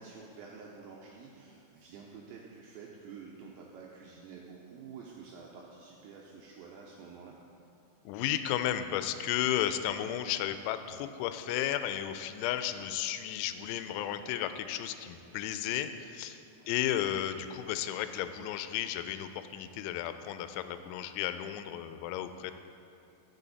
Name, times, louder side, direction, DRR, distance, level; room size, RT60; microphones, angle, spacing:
voice 1, 0.0-7.4 16.4-16.8, right 5 dB, 85° right, -2 dB, 2.6 m, -49 dB
voice 2, 8.1-22.5, left 11 dB, 85° left, 10 dB, 3.2 m, -33 dB
14.0 x 7.0 x 4.0 m, 2.5 s
omnidirectional pair, 6.0 m